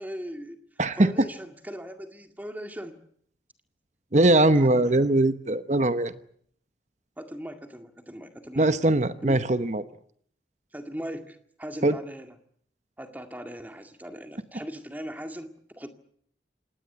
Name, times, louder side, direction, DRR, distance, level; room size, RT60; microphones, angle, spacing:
voice 1, 0.0-3.0 4.5-5.1 7.2-8.7 9.2-9.4 10.7-12.3 13.0-15.9, equal, 10° right, 6 dB, 2.1 m, -39 dB
voice 2, 0.8-1.1 4.1-6.2 8.6-9.8 11.8-12.0, right 2 dB, 40° right, 12 dB, 1.0 m, -21 dB
26.5 x 19.0 x 8.0 m, 0.65 s
head